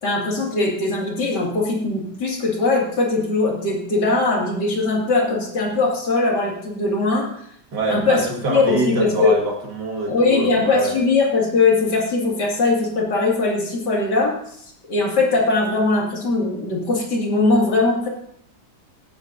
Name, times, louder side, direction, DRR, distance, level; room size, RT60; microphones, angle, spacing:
voice 1, 0.0-7.3 7.9-9.4 10.1-14.3 14.9-18.1, left 3 dB, 60° left, -2 dB, 2.9 m, -20 dB
voice 2, 7.7-11.0, right 2 dB, 60° right, 0 dB, 2.5 m, -24 dB
18.0 x 9.1 x 2.7 m, 0.67 s
omnidirectional pair, 2.0 m